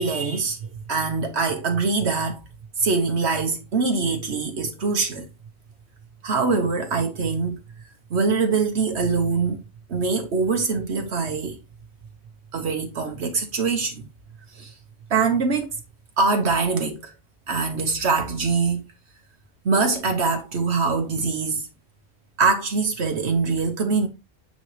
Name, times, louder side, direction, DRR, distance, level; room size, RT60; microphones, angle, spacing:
voice 1, 0.0-2.4 2.8-5.3 6.2-7.6 8.1-9.6 9.9-11.6 12.5-14.1 14.6-14.7 15.1-15.7 16.2-17.1 17.5-18.8 19.6-21.7 22.4-24.1, right 4 dB, 75° right, 1.3 m, -23 dB
9.2 x 4.3 x 3.1 m
omnidirectional pair, 1.1 m